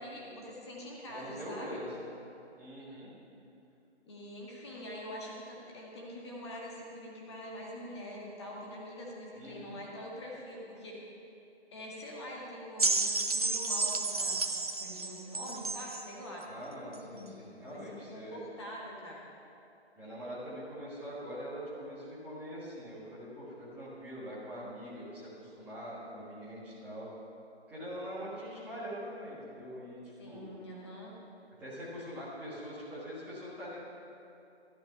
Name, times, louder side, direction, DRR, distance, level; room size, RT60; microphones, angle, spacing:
voice 1, 0.0-1.8 4.0-11.0 11.7-14.4 14.8-16.4 17.0-19.2 30.2-31.2, equal, 25° left, -2 dB, 1.8 m, -44 dB
voice 2, 1.1-1.9 2.6-3.1 9.3-9.8 16.5-18.4 19.9-27.1 27.7-30.6 31.6-33.8, equal, 5° right, -10 dB, 1.6 m, -43 dB
sound 1, 12.8-16.1 16.9-17.0, right 3 dB, 35° right, 0.6 m, -31 dB
12.0 x 12.0 x 5.6 m, 2.7 s
figure-of-eight pair, 150°, 34 cm